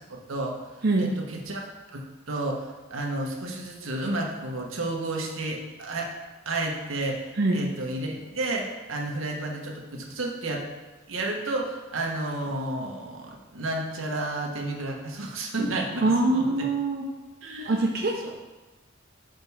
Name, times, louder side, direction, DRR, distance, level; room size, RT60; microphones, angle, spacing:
voice 1, 0.1-0.6 1.0-6.1 6.4-10.7 11.1-16.7 17.4-18.3, right 2 dB, 85° right, 0 dB, 1.2 m, -32 dB
voice 2, 16.0-17.0 17.7-18.3, right 2 dB, 50° right, 0 dB, 0.6 m, -23 dB
5.2 x 4.7 x 5.5 m, 1.2 s
head